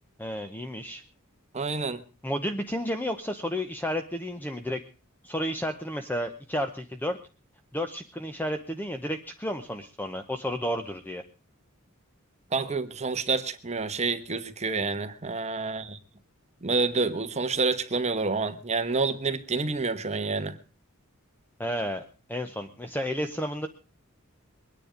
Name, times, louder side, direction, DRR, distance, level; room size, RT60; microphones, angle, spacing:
voice 1, 0.2-1.0 2.2-4.8 5.2-7.2 7.7-11.2 21.6-23.7, equal, 10° left, 7 dB, 0.8 m, -32 dB
voice 2, 1.5-2.0 12.5-16.0 16.6-20.6, right 4 dB, 30° right, 9 dB, 1.1 m, -28 dB
22.5 x 9.8 x 5.0 m, 0.35 s
head